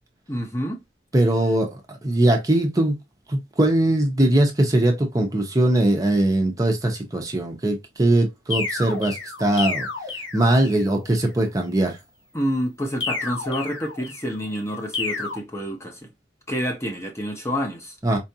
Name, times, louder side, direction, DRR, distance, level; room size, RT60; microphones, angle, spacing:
voice 1, 0.3-0.8 12.3-16.0 16.5-18.0, equal, 15° left, 0.7 m, -28 dB
voice 2, 1.1-3.0 3.3-9.9 10.3-12.0 18.0-18.2, right 1 dB, 20° right, 0.7 m, -21 dB
sound 1, 8.5-10.9 13.0-14.4 14.9-15.4, left 4 dB, 75° left, 1.2 m, -30 dB
4.4 x 2.5 x 2.7 m
head